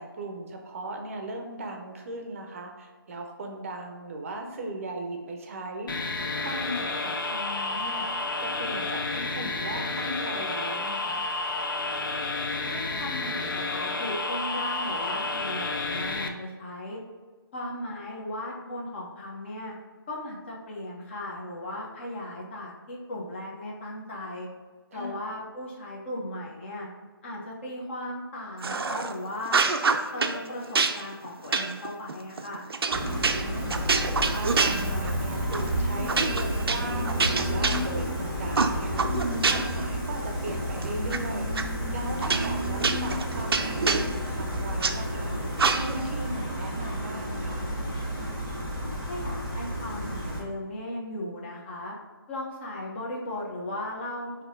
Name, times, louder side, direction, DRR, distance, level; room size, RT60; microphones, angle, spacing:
voice 1, 0.0-5.9 6.4-8.1 8.4-11.2 24.9-25.3 33.1-45.3 45.7-47.7, right 1 dB, 35° right, 3 dB, 0.6 m, -37 dB
sound 1, 5.9-16.3, left 3 dB, 60° left, 0.5 m, -31 dB
voice 2, 12.6-17.0 17.5-19.7 20.1-24.5 24.9-26.9 27.2-29.6 30.1-32.6 49.1-51.9 52.3-54.4, left 1 dB, 30° left, -2 dB, 0.8 m, -36 dB
sound 2, 28.6-29.1 29.4-30.4 30.7-35.2 35.5-35.7 36.1-38.2 38.5-39.8 40.2-41.2 41.5-41.6 42.2-44.9 45.6-46.1, right 4 dB, 80° right, 0.4 m, -27 dB
Gull seagull, 32.9-50.4, equal, 10° left, 1.5 m, -31 dB
5.4 x 2.7 x 2.6 m, 1.4 s
figure-of-eight pair, 160°, 13 cm